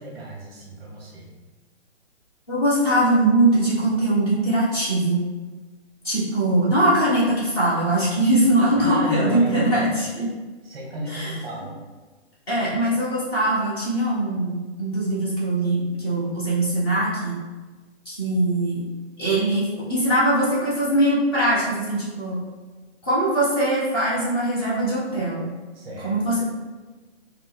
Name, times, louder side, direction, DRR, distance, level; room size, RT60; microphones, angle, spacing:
voice 1, 0.0-1.3 8.8-9.9 10.6-11.8 25.7-26.4, equal, 20° right, -3 dB, 0.9 m, -32 dB
voice 2, 2.5-5.2 6.0-10.3 11.1-11.4 12.5-17.4 18.0-18.9 19.2-22.4 23.0-25.5 26.0-26.4, right 1 dB, 20° left, -9 dB, 1.3 m, -21 dB
4.8 x 2.3 x 3.6 m, 1.3 s
hypercardioid pair, 170°, 35 cm